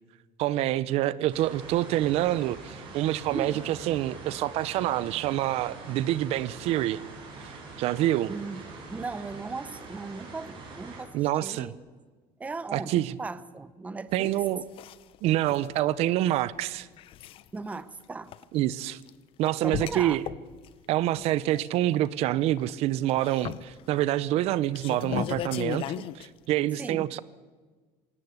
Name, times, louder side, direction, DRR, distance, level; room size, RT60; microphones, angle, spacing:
voice 1, 0.4-7.0 7.4-7.5 7.8-8.3 11.1-11.7 12.7-13.1 14.1-14.6 15.2-16.9 18.5-19.0 19.4-20.2 20.9-27.2, right 14 dB, 55° right, 19 dB, 0.6 m, -27 dB
sound 1, 1.3-11.0, right 3 dB, 40° right, 6.1 m, -44 dB
voice 2, 3.3-3.7 8.3-8.6 8.9-11.8 12.4-14.3 17.5-18.3 19.4-20.2 26.8-27.1, right 3 dB, 10° right, 16 dB, 0.7 m, -37 dB
sound 2, 14.1-14.3 14.8-15.2 15.4-15.8 16.9-17.5 17.7-17.8 18.3-18.4 19.0-19.1 19.4-20.7 21.1-22.1 22.4-22.7 23.1-24.1 24.5-26.3, left 11 dB, 45° left, 0.7 m, -36 dB
19.0 x 17.5 x 8.1 m, 1.4 s
cardioid pair, 145°, 12 cm